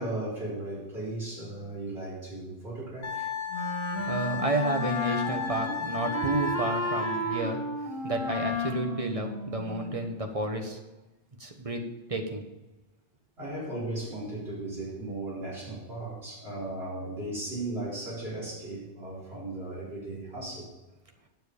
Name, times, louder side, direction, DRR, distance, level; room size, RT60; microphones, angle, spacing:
voice 1, 0.0-3.3 3.9-4.1 7.3-7.5 13.4-20.7, right 2 dB, 75° right, -8 dB, 4.6 m, -36 dB
Wind instrument woodwind instrument, 3.0-7.5, left 7 dB, 85° left, 1.4 m, -35 dB
Wind instrument woodwind instrument 2, 3.5-10.1, left 1 dB, 65° left, 1.8 m, -33 dB
voice 2, 4.1-7.6 8.0-10.8 11.4-11.8 12.1-12.4, right 2 dB, 35° right, 3 dB, 1.4 m, -31 dB
9.4 x 7.4 x 5.3 m, 1.0 s
omnidirectional pair, 1.0 m